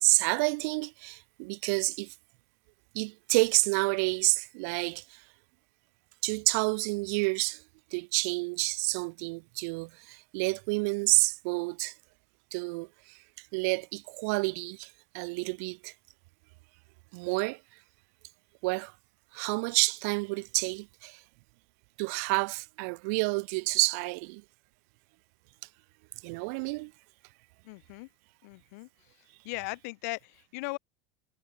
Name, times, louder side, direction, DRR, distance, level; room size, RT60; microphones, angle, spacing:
voice 1, 0.0-2.1 2.9-5.0 6.2-7.6 7.9-11.9 12.5-12.9 13.5-14.9 15.1-15.9 17.1-17.6 18.6-18.9 19.3-21.2 22.0-24.4 26.2-26.9, right 31 dB, 65° right, 1.2 m, -29 dB
voice 2, 27.6-28.1 28.4-28.9 29.4-30.8, left 26 dB, 70° left, 6.5 m, -38 dB
supercardioid pair, 110°, 9 cm